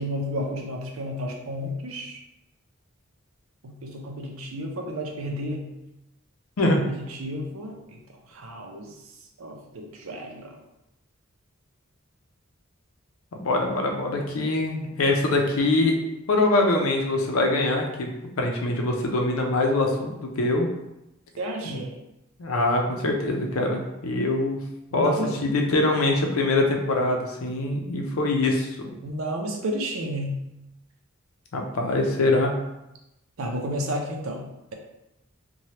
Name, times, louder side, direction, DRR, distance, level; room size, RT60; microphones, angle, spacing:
voice 1, 0.0-2.2 3.6-5.7 6.8-8.0 8.3-8.9 9.4-10.6 21.4-21.9 24.9-25.3 29.0-30.4 33.4-34.4, equal, 75° right, 1 dB, 0.6 m, -32 dB
voice 2, 13.4-16.0 16.3-18.1 18.4-20.7 21.7-21.8 22.4-24.6 24.9-28.9 31.5-32.6, left 2 dB, 85° left, 2 dB, 0.5 m, -23 dB
3.1 x 2.2 x 2.8 m, 0.91 s
head